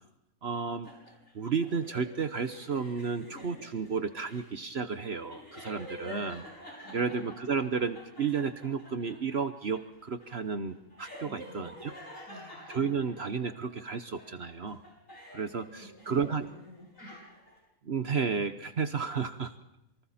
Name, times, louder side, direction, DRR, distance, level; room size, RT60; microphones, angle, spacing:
voice 1, 0.4-0.9 1.3-6.4 6.9-11.9 12.7-14.8 15.3-16.4 17.8-19.5, right 5 dB, 50° right, 10 dB, 1.2 m, -32 dB
sound 1, 0.8-13.8 14.2-16.5 16.7-17.6, equal, 60° left, 8.5 m, -49 dB
voice 2, 6.0-6.4 6.8-7.3 11.2-11.8 12.3-12.6 15.4-17.2, equal, 90° left, -4 dB, 8.1 m, -51 dB
28.0 x 24.5 x 4.3 m, 0.84 s
omnidirectional pair, 1.5 m